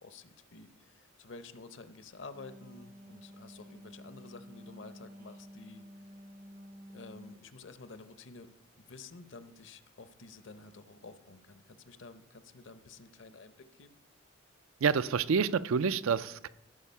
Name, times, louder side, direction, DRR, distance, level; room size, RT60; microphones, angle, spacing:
voice 1, 0.0-5.8 6.9-8.5 8.8-14.0, left 3 dB, 65° left, 12 dB, 0.7 m, -51 dB
Wind instrument woodwind instrument, 2.1-7.5, equal, 45° right, 0.6 m, -51 dB
voice 2, 14.8-16.5, right 6 dB, 90° right, 15 dB, 0.4 m, -28 dB
14.5 x 4.9 x 5.5 m, 0.85 s
head